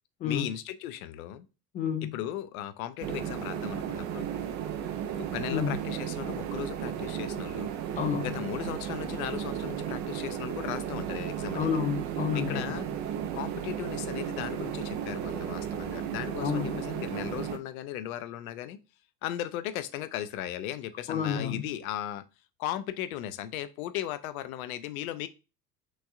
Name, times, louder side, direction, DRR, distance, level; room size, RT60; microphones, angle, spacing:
voice 1, 0.2-1.5 2.1-4.3 5.2-7.7 8.2-11.7 12.3-12.9 13.3-18.8 19.2-22.3 22.6-25.3, left 12 dB, 60° left, 0.6 m, -37 dB
voice 2, 1.7-2.1 5.5-5.8 8.0-8.3 11.5-12.8 16.4-16.8 21.1-21.6, left 7 dB, 20° left, 0.3 m, -30 dB
sound 1, 3.0-17.6, right 9 dB, 35° right, 0.6 m, -34 dB
6.1 x 2.6 x 2.4 m
figure-of-eight pair, 75°, 50 cm